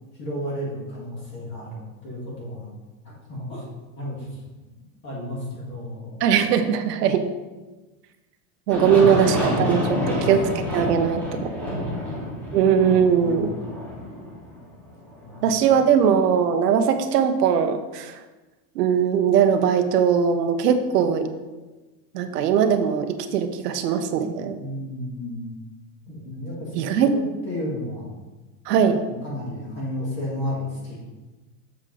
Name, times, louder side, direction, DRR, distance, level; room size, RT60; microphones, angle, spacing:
voice 1, 0.2-2.7 3.3-3.6 4.0-4.3 4.7-6.2 8.8-10.3 11.5-12.1 13.1-13.5 15.2-15.8 24.6-25.5 26.1-27.0 27.4-28.1 29.0-31.0, left 1 dB, 25° left, -5 dB, 1.8 m, -33 dB
voice 2, 6.2-7.3 8.7-11.5 12.5-13.5 15.4-18.1 18.8-21.3 22.1-24.6 26.7-27.2 28.7-29.0, right 7 dB, 85° right, 8 dB, 1.0 m, -20 dB
Aircraft, 8.7-15.4, equal, 5° left, 0.6 m, -28 dB
7.2 x 6.6 x 3.8 m, 1.2 s
supercardioid pair, 180°, 46 cm